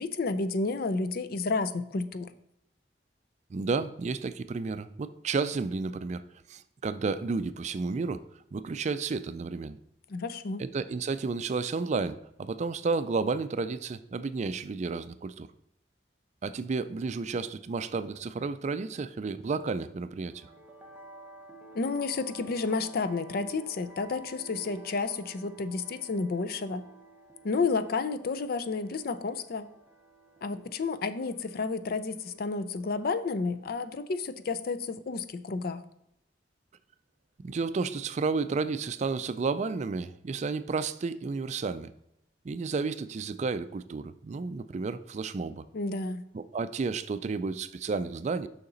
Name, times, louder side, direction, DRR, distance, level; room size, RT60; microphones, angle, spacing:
voice 1, 0.0-2.3 10.1-10.6 21.7-26.8 27.4-29.7 30.4-35.8 45.7-46.2, left 4 dB, 55° left, 12 dB, 0.5 m, -31 dB
voice 2, 3.5-6.2 6.5-8.2 8.5-9.8 10.6-15.5 16.4-20.5 37.4-41.9 42.4-45.6 46.3-48.5, right 4 dB, 40° right, 13 dB, 0.4 m, -32 dB
sound 1, 20.3-34.4, right 3 dB, 10° right, 0.7 m, -53 dB
6.8 x 5.8 x 3.9 m, 0.80 s
head